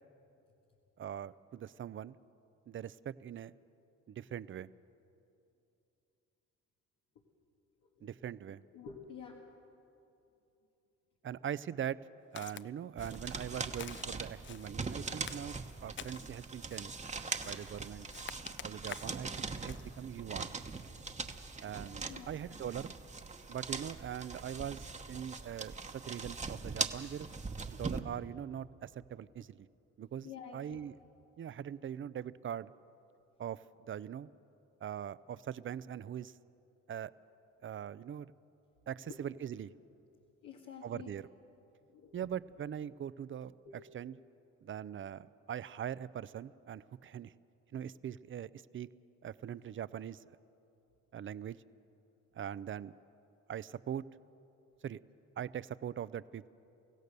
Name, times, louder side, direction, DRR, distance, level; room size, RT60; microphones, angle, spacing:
voice 1, 1.0-2.2 2.7-3.6 4.1-4.7 8.0-8.6 11.2-12.0 12.3-15.5 15.8-16.9 17.4-18.1 18.6-20.5 21.6-22.9 23.5-27.3 27.7-29.7 30.0-30.9 31.4-32.7 33.4-34.3 34.8-36.4 36.9-37.1 37.6-38.3 38.9-39.7 40.8-41.3 42.1-43.5 43.9-44.1 44.6-47.3 47.7-48.9 49.2-50.2 51.1-51.6 52.3-52.9 53.5-54.0 54.8-55.0 55.4-56.5, right 9 dB, 40° right, 18 dB, 0.5 m, -41 dB
voice 2, 7.8-8.1 8.7-9.4 22.1-22.3 30.2-30.8 39.1-39.2 40.4-41.1 41.9-42.3 43.7-43.8, left 7 dB, 85° left, -2 dB, 1.9 m, -49 dB
Walk footsteps, 12.4-12.7 13.0-13.4 13.7-14.8 15.2-16.3 16.7-17.0 17.4-17.7 18.1-19.2 19.6-19.9, left 9 dB, 40° left, 0.5 m, -48 dB
sound 1, 13.0-28.0, right 4 dB, 25° right, 1.1 m, -41 dB
24.0 x 16.0 x 6.8 m, 2.8 s
cardioid pair, 90°, 30 cm